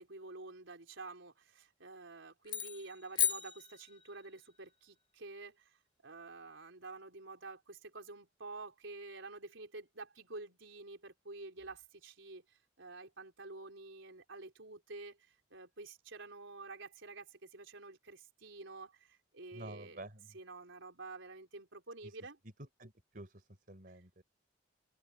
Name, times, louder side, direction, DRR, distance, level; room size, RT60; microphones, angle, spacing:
voice 1, 0.0-5.8 6.0-20.1 20.3-22.4, right 3 dB, 85° right, 4.2 m, -49 dB
sound 1, 2.4-4.4, left 8 dB, 25° left, 1.8 m, -36 dB
voice 2, 19.5-20.4 22.0-22.2 22.6-24.2, right 1 dB, 50° right, 4.0 m, -50 dB
open air
head